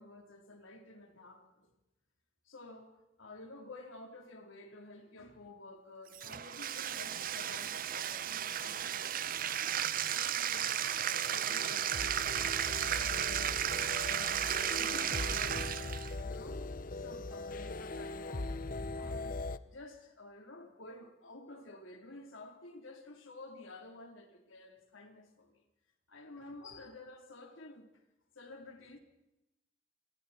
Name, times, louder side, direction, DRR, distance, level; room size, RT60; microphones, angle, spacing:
voice 1, 0.0-1.7 2.4-9.7 10.1-14.3 14.7-15.9 16.2-16.7 17.0-25.6 26.1-27.9 28.4-29.0, left 2 dB, 90° left, 3.6 m, -52 dB
Bathtub (filling or washing), 6.1-16.1, right 10 dB, 45° right, 0.7 m, -34 dB
sound 1, 11.1-19.6, left 2 dB, 45° left, 0.8 m, -40 dB
28.5 x 27.0 x 4.4 m
head